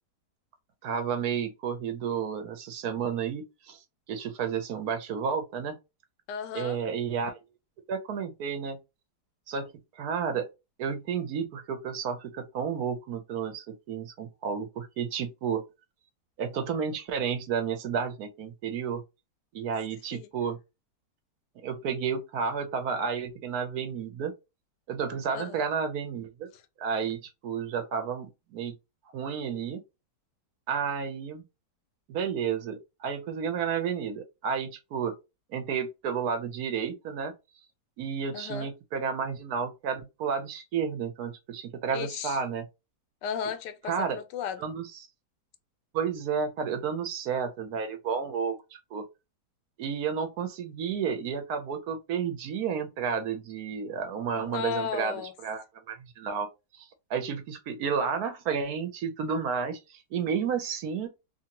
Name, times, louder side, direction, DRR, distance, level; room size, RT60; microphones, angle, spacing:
voice 1, 0.8-3.8 4.1-5.8 6.5-7.4 7.9-8.8 9.5-10.5 10.8-15.6 16.4-19.0 19.5-20.6 21.6-24.3 24.9-26.5 26.8-28.7 29.1-29.8 30.7-31.4 32.1-35.1 35.5-37.3 38.0-42.6 43.9-44.2 44.6-45.0 45.9-48.6 48.9-49.0 49.8-56.5 56.7-61.1, right 6 dB, 70° right, 1.0 m, -31 dB
voice 2, 6.3-6.8 20.1-20.3 25.3-25.6 38.3-38.7 41.9-42.4 43.2-44.6 54.4-55.3, left 7 dB, 80° left, 1.2 m, -35 dB
2.8 x 2.6 x 2.8 m
omnidirectional pair, 1.8 m